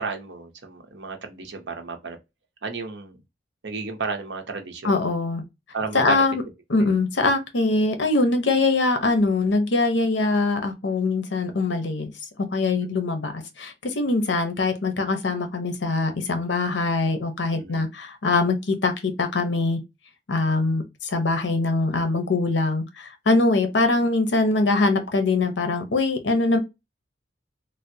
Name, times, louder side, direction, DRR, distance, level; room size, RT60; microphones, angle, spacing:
voice 1, 0.0-2.2 2.6-3.2 3.6-4.9 5.7-6.2 6.8-6.9 17.5-17.9, right 4 dB, 70° right, 0.7 m, -32 dB
voice 2, 4.8-5.4 5.9-6.4 6.7-12.1 12.5-19.8 20.3-26.6, left 3 dB, 70° left, 0.7 m, -23 dB
3.3 x 2.1 x 2.6 m
head